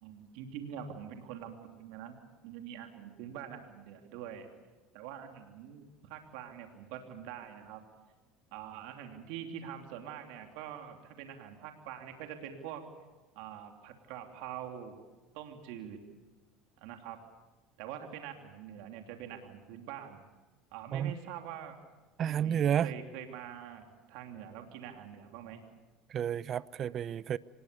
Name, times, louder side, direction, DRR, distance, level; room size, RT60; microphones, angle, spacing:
voice 1, 0.0-2.2 2.4-4.5 4.9-7.8 8.5-12.8 13.3-15.0 15.3-16.0 16.8-17.2 17.8-20.3 20.7-21.8 22.2-25.6, right 9 dB, 75° right, 3.0 m, -45 dB
voice 2, 22.2-22.9 26.1-27.4, right 9 dB, 45° right, 0.7 m, -31 dB
25.5 x 20.5 x 6.9 m
supercardioid pair, 95°, 0 cm